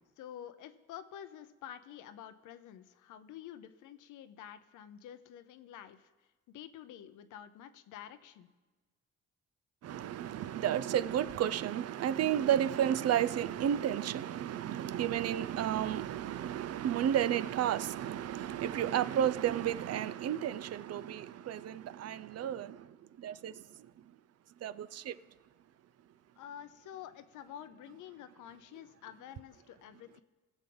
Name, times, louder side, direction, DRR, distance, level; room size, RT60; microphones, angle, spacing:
voice 1, 0.2-6.1 6.5-8.5 26.4-30.2, left 10 dB, 85° left, 0.8 m, -49 dB
voice 2, 9.8-23.6 24.6-25.2, right 10 dB, 55° right, 0.5 m, -32 dB
20.0 x 7.2 x 3.9 m
cardioid pair, 90°, 30 cm